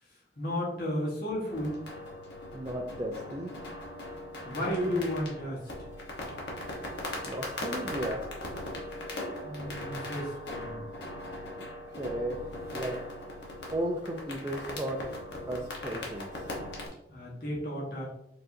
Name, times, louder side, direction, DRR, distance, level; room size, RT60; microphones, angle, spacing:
voice 1, 0.0-1.8 4.4-5.6 9.4-10.8 17.1-18.1, left 1 dB, 55° left, -4 dB, 1.3 m, -33 dB
sound 1, 1.5-16.9, left 1 dB, 85° left, 1.0 m, -39 dB
voice 2, 2.5-3.6 7.3-8.2 11.6-13.0 13.7-15.1 15.5-16.4, right 1 dB, 15° right, -1 dB, 0.4 m, -35 dB
4.8 x 3.7 x 2.6 m, 0.80 s
head